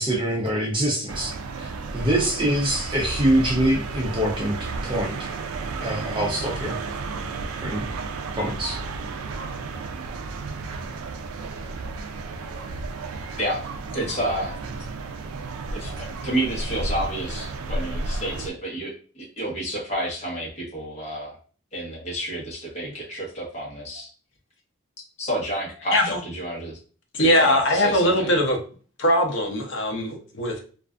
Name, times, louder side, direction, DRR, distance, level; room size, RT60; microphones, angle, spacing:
voice 1, 0.0-5.3 5.8-6.8 7.6-7.8 8.4-8.8, right 1 dB, 25° right, -1 dB, 0.5 m, -25 dB
sound 1, 1.1-18.5, right 3 dB, 90° right, 0.3 m, -32 dB
voice 2, 13.9-14.5 15.7-21.3 21.7-24.1 25.2-26.8 27.2-28.3, right 1 dB, 35° left, -4 dB, 1.0 m, -30 dB
voice 3, 27.1-28.6 29.0-30.6, left 1 dB, 60° left, 2 dB, 0.6 m, -21 dB
2.4 x 2.3 x 2.3 m, 0.40 s
head